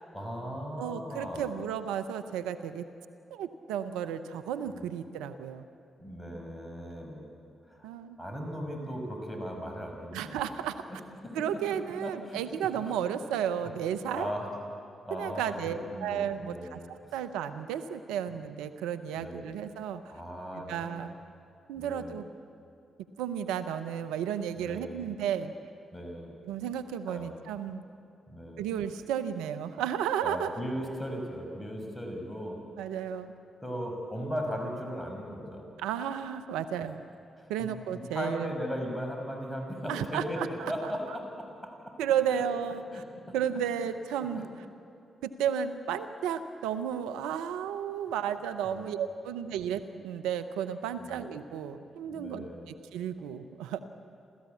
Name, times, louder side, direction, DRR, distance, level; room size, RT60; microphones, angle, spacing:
voice 1, 0.1-1.5 4.7-4.9 6.0-7.3 7.7-7.9 8.2-10.4 10.9-11.0 11.2-11.4 12.0-12.7 13.1-13.2 14.1-14.5 15.0-17.1 19.1-19.6 20.1-21.1 21.8-22.2 24.6-25.1 25.9-26.3 27.1-27.3 28.3-28.7 30.2-32.6 33.6-35.7 37.4-40.4 40.7-41.9 42.3-42.4 42.9-43.4 44.3-44.4 48.6-48.8 51.0-51.2 52.0-52.7, equal, 15° left, 2 dB, 6.2 m, -38 dB
voice 2, 0.8-2.8 3.3-5.6 7.8-8.2 10.1-10.8 11.3-14.3 15.1-20.0 20.7-21.1 21.7-22.2 23.2-25.5 26.5-27.8 28.6-30.5 32.8-33.3 35.8-37.0 37.5-38.5 39.9-41.2 42.0-43.0 43.3-44.5 45.2-53.8, right 9 dB, 80° right, 10 dB, 0.7 m, -33 dB
28.5 x 14.5 x 8.4 m, 2.6 s
hypercardioid pair, 40°, 0 cm